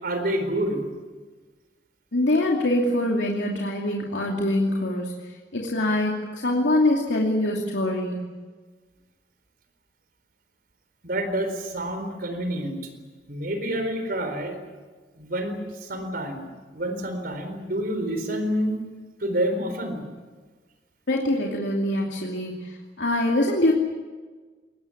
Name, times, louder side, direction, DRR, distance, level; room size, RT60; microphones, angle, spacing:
voice 1, 0.0-0.8 11.0-12.8 13.3-14.6 15.1-16.5 16.7-18.7 19.2-20.0, right 1 dB, 60° right, 7 dB, 4.2 m, -28 dB
voice 2, 2.1-5.1 5.5-8.2 21.1-23.7, left 1 dB, 90° left, -1 dB, 2.7 m, -24 dB
22.0 x 19.5 x 9.9 m, 1.4 s
head